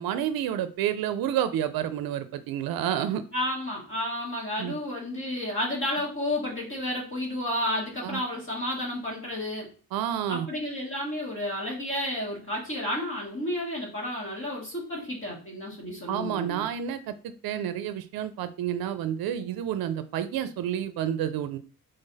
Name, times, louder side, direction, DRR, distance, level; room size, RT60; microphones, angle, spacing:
voice 1, 0.0-3.2 4.6-4.7 8.0-8.2 9.9-10.5 16.1-21.6, right 10 dB, 80° right, 11 dB, 0.5 m, -29 dB
voice 2, 3.3-9.7 10.3-16.7, left 1 dB, 35° left, -3 dB, 1.5 m, -31 dB
3.9 x 3.3 x 4.0 m, 0.38 s
wide cardioid pair, 165°, 36 cm